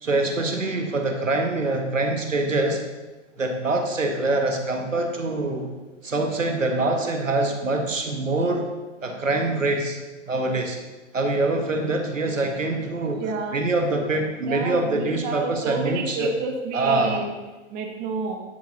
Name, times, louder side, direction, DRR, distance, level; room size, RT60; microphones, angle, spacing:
voice 1, 0.0-2.8 3.4-5.7 6.0-8.7 9.0-10.0 10.3-10.8 11.1-13.2 13.5-16.3 16.7-17.2, right 2 dB, 85° right, 3 dB, 1.6 m, -24 dB
voice 2, 13.2-13.7 14.4-17.3 17.7-18.4, right 4 dB, 25° right, 2 dB, 1.1 m, -29 dB
9.9 x 7.2 x 3.9 m, 1.2 s
figure-of-eight pair, 120°, 37 cm